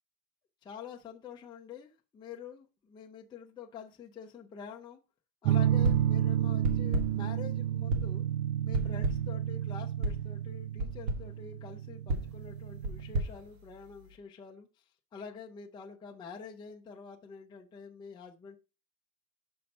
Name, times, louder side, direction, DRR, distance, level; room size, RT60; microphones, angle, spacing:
voice 1, 0.6-5.0 5.4-8.3 8.6-14.7 15.1-18.6, left 6 dB, 10° left, 0.6 m, -47 dB
sound 1, 5.4-13.1, right 11 dB, 85° right, 0.7 m, -31 dB
sound 2, 5.8-6.2 6.6-7.3 7.9-8.3 8.7-9.4 10.0-10.3 10.8-11.3 12.1-14.2, right 1 dB, 60° right, 1.5 m, -34 dB
5.7 x 5.6 x 5.2 m
cardioid pair, 175°, 37 cm